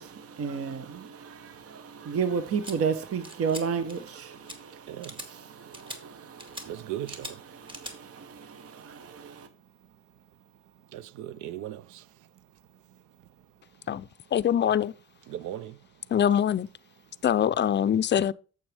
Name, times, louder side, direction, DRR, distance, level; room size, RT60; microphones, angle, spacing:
voice 1, 0.0-6.9 7.4-9.5, right 6 dB, 50° right, 0.9 m, -33 dB
sound 1, 2.6-2.7 3.2-3.6 3.9-4.2 4.5-4.6 5.0-5.3 5.7-6.0 6.4-6.7 7.1-7.3 7.7-7.9, equal, 15° right, 1.9 m, -40 dB
voice 2, 6.7-7.4 10.9-12.0 15.3-15.8, right 12 dB, 85° right, 0.6 m, -37 dB
voice 3, 13.9-14.9 16.1-16.7 17.2-18.3, left 9 dB, 35° left, 0.4 m, -24 dB
8.8 x 7.3 x 3.4 m
cardioid pair, 90°, 30 cm